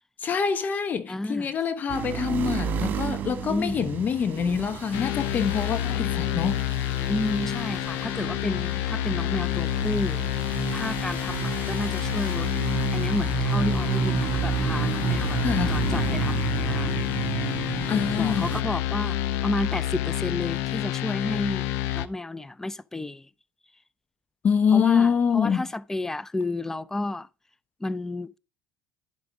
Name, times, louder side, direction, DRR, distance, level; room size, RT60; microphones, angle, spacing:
voice 1, 0.2-6.7 15.4-15.8 17.9-18.4 24.4-25.7, left 7 dB, 45° left, 1.1 m, -25 dB
voice 2, 1.1-1.5 3.5-3.8 7.1-10.2 10.7-12.5 12.9-15.4 15.7-16.9 18.2-19.2 19.4-23.3 24.7-27.3 27.8-28.4, left 2 dB, 10° left, 0.5 m, -31 dB
sound 1, 1.9-18.6, right 9 dB, 50° right, 1.6 m, -31 dB
sound 2, 4.9-22.1, left 13 dB, 75° left, 0.5 m, -28 dB
11.0 x 5.2 x 4.7 m
supercardioid pair, 75°, 4 cm